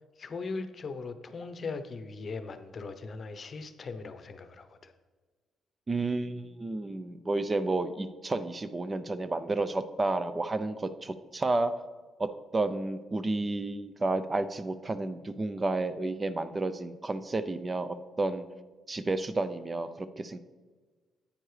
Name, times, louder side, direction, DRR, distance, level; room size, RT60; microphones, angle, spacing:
voice 1, 0.2-4.9, left 4 dB, 45° left, 10 dB, 0.7 m, -39 dB
voice 2, 5.9-11.7 12.2-18.4 18.9-20.4, right 2 dB, 30° right, 12 dB, 0.5 m, -31 dB
10.0 x 8.7 x 3.3 m, 1.4 s
supercardioid pair, 65°, 0 cm